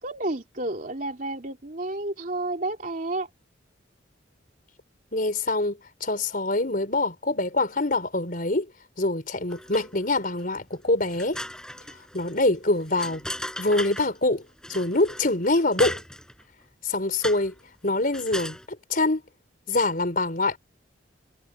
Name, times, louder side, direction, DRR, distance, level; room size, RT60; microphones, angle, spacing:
voice 1, 0.0-3.3, right 2 dB, 45° right, 3.0 m, -31 dB
voice 2, 5.1-8.7 9.0-11.4 12.1-13.2 13.6-16.0 16.8-17.5 17.8-18.6 18.9-19.2 19.7-20.6, left 2 dB, 50° left, 4.5 m, -25 dB
sound 1, 9.5-10.1 10.6-10.7 11.1-14.2 14.6-16.4 17.2-17.6 18.0-18.7, left 1 dB, 5° left, 5.8 m, -36 dB
head